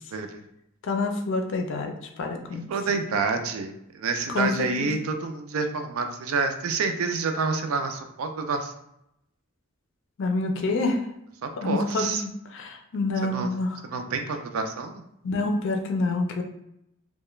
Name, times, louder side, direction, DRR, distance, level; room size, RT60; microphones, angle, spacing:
voice 1, 0.8-2.7 4.3-4.9 10.2-11.0 11.6-13.8 15.2-16.4, left 2 dB, 65° left, 4 dB, 0.4 m, -27 dB
voice 2, 2.7-8.7 11.4-12.2 13.3-13.5 13.9-15.0, right 4 dB, 90° right, 6 dB, 0.4 m, -28 dB
2.3 x 2.1 x 3.0 m, 0.81 s
head